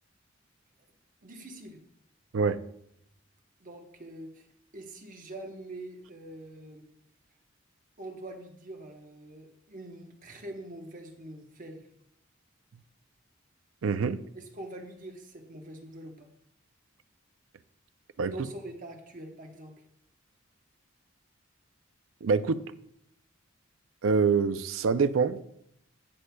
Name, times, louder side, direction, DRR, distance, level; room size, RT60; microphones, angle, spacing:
voice 1, 1.2-1.8 3.6-4.5 4.7-6.9 8.0-11.9 14.3-16.3 18.3-19.7, right 1 dB, 45° right, 1.1 m, -44 dB
voice 2, 13.8-14.2 18.2-18.3 22.2-22.6 24.0-25.5, right 5 dB, 80° right, 0.5 m, -25 dB
17.5 x 6.4 x 2.3 m
head